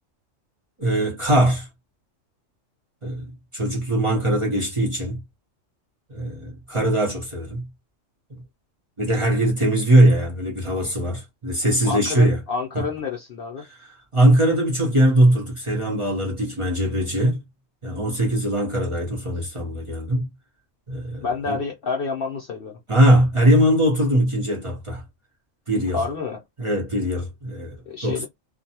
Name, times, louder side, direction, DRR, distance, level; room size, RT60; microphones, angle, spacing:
voice 1, 0.8-1.7 3.0-5.2 6.1-7.7 8.3-8.4 9.0-12.4 12.7-12.8 13.6-17.4 17.8-20.3 20.9-21.6 22.9-25.0 25.7-26.0 26.6-28.2, right 1 dB, 30° right, 0.8 m, -21 dB
voice 2, 11.8-13.6 21.2-22.8 25.9-26.4 27.9-28.2, left 4 dB, 60° left, 0.7 m, -28 dB
2.6 x 2.2 x 2.7 m
omnidirectional pair, 1.3 m